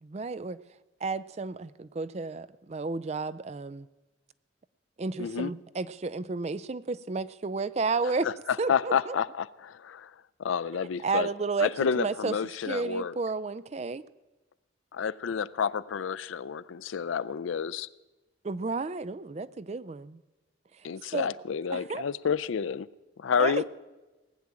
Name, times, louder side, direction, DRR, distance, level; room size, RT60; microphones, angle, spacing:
voice 1, 0.0-0.6 1.0-3.9 5.0-8.3 8.6-9.2 10.8-12.3 12.6-14.0 18.4-20.2 21.1-21.3 21.7-22.0 23.4-23.6, right 4 dB, 35° right, 0.4 m, -32 dB
voice 2, 5.2-5.5 8.2-10.1 10.4-11.3 11.6-13.1 14.9-17.9 20.8-22.9 23.2-23.6, left 6 dB, 80° left, 0.4 m, -30 dB
19.0 x 7.2 x 8.8 m
head